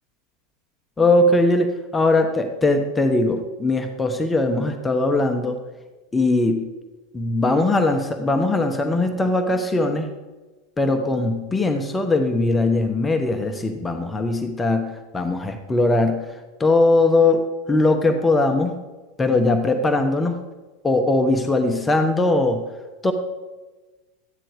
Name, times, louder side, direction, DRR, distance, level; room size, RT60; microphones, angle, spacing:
voice 1, 1.0-5.6 6.1-6.7 7.1-10.1 10.8-16.2 16.6-17.4 17.7-18.7 19.2-20.4 20.8-22.7 23.0-23.1, left 2 dB, 15° left, 5 dB, 1.1 m, -20 dB
13.0 x 10.5 x 5.0 m, 1.2 s
figure-of-eight pair, 85°, 0 cm